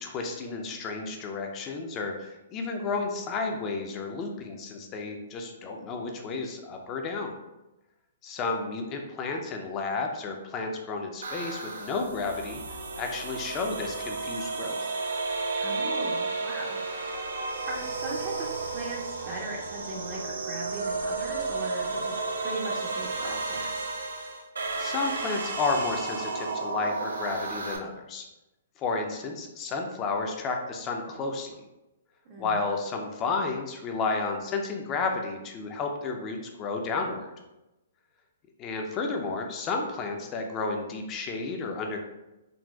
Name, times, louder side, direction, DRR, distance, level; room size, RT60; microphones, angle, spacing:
voice 1, 0.0-7.3 8.2-12.6 13.0-14.8 24.8-28.3 28.8-31.5 32.4-37.3 38.6-42.0, left 4 dB, 30° left, 3 dB, 0.4 m, -32 dB
sound 1, 11.2-27.8, right 3 dB, 85° right, 0.4 m, -33 dB
voice 2, 15.6-17.2 17.7-23.9 32.2-32.6, right 2 dB, 30° right, -2 dB, 0.5 m, -39 dB
3.9 x 2.1 x 2.3 m, 0.98 s
hypercardioid pair, 135°, 0 cm